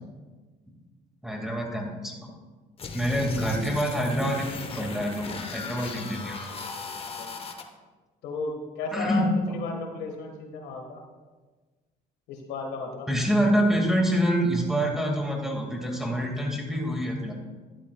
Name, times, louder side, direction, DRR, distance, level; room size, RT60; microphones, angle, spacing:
voice 1, 1.2-2.3 2.9-4.5 4.8-6.4 8.9-9.3 13.1-17.3, equal, ahead, 0 dB, 2.1 m, -26 dB
sound 1, 2.8-7.6, left 4 dB, 35° left, 1.1 m, -37 dB
voice 2, 8.2-11.0 12.3-13.1, left 3 dB, 85° left, 2 dB, 1.7 m, -34 dB
12.0 x 11.0 x 2.4 m, 1.3 s
cardioid pair, 110°, 17 cm